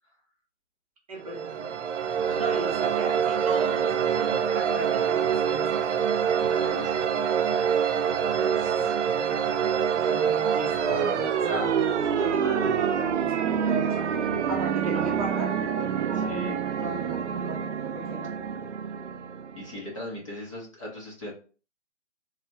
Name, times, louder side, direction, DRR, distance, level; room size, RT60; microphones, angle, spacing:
voice 1, 1.1-1.9 2.3-5.8 9.9-11.8 12.0-14.2 14.5-15.6 15.9-18.4, right 2 dB, 30° right, -1 dB, 0.7 m, -36 dB
sound 1, 1.2-19.9, right 8 dB, 85° right, 0.5 m, -26 dB
voice 2, 2.2-2.5 6.3-7.1 7.5-8.0 8.3-9.0 16.1-16.6 19.6-21.3, left 1 dB, 30° left, -3 dB, 0.6 m, -39 dB
3.2 x 2.1 x 2.5 m, 0.38 s
hypercardioid pair, 155°, 35 cm